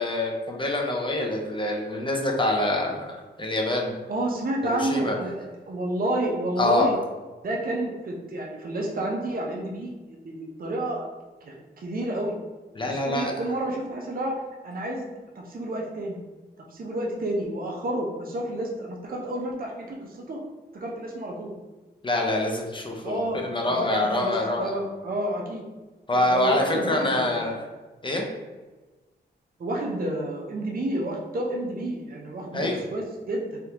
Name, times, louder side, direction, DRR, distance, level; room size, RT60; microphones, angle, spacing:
voice 1, 0.0-3.9 4.7-5.1 6.6-6.9 12.8-13.3 22.0-24.8 26.1-27.5 28.0-28.3 32.5-32.8, left 1 dB, 25° left, 0 dB, 0.6 m, -25 dB
voice 2, 4.1-7.0 7.4-9.9 10.2-11.1 11.4-12.3 12.8-15.1 15.4-16.2 16.7-20.4 20.7-21.5 23.0-23.4 23.7-25.6 26.2-27.5 29.6-33.6, right 1 dB, 50° right, -1 dB, 0.6 m, -30 dB
3.4 x 2.3 x 2.8 m, 1.2 s
cardioid pair, 70°, 19 cm